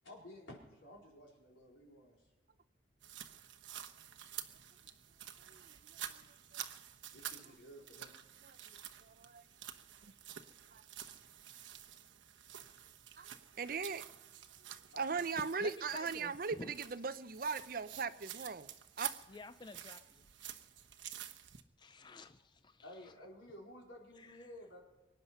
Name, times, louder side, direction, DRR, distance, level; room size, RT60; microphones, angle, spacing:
voice 1, 0.0-2.2 7.1-8.1 14.9-15.0 22.8-24.8, left 1 dB, 90° left, -2 dB, 4.3 m, -53 dB
sound 1, 3.0-21.6, right 11 dB, 80° right, 0.9 m, -50 dB
voice 2, 9.0-9.4 10.0-10.1 10.7-10.8 13.2-13.3 13.6-14.0 15.0-18.7 19.0-19.1, right 5 dB, 50° right, 13 dB, 0.6 m, -39 dB
voice 3, 15.6-16.7 19.3-20.3 21.8-23.2 24.2-24.5, left 3 dB, 25° left, 11 dB, 0.4 m, -52 dB
24.0 x 9.8 x 5.6 m, 1.1 s
head